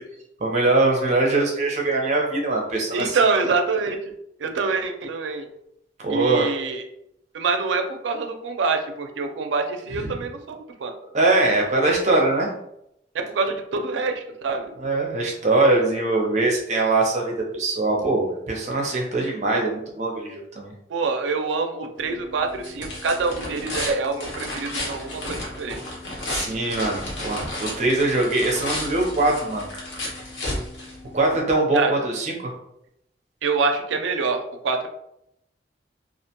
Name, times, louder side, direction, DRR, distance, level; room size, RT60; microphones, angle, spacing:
voice 1, 0.4-3.2 6.0-6.5 9.9-10.1 11.1-12.5 14.8-20.7 26.3-29.7 31.1-32.5, right 2 dB, 40° right, -1 dB, 0.6 m, -22 dB
voice 2, 2.9-4.1 4.4-5.5 6.1-6.8 7.3-10.9 13.1-14.7 20.9-25.8 31.7-32.0 33.4-34.9, right 4 dB, 85° right, 5 dB, 0.4 m, -25 dB
sound 1, 22.0-31.4, left 1 dB, 80° left, 0.8 m, -33 dB
2.4 x 2.1 x 2.8 m, 0.78 s
head